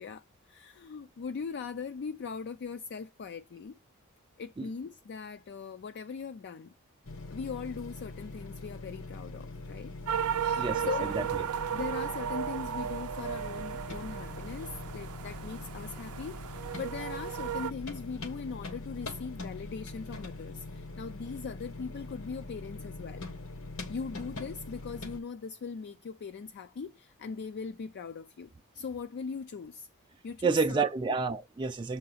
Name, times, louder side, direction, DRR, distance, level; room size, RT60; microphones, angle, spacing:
voice 1, 0.0-3.8 4.4-6.7 7.3-9.9 10.4-11.1 11.7-23.2 23.9-29.9 30.2-30.8, left 5 dB, 50° left, 0.4 m, -40 dB
sound 1, 7.0-25.2, left 2 dB, 65° left, 1.2 m, -43 dB
sound 2, 10.1-17.7, right 8 dB, 80° right, 0.5 m, -35 dB
voice 2, 10.6-11.3 30.4-32.0, right 4 dB, 20° right, 0.3 m, -29 dB
6.8 x 3.8 x 5.5 m
head